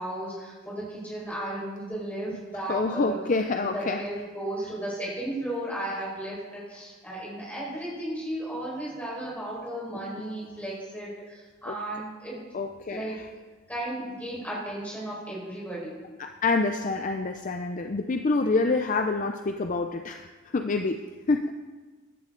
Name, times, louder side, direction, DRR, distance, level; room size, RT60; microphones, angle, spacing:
voice 1, 0.0-3.2 3.5-12.4 12.9-13.2 13.7-16.0, right 1 dB, 5° left, -6 dB, 4.9 m, -34 dB
voice 2, 2.7-4.0 10.2-10.3 11.7-11.8 12.5-13.3 16.2-21.0 21.3-21.5, left 3 dB, 35° left, 6 dB, 0.5 m, -27 dB
15.5 x 10.5 x 3.8 m, 1.3 s
head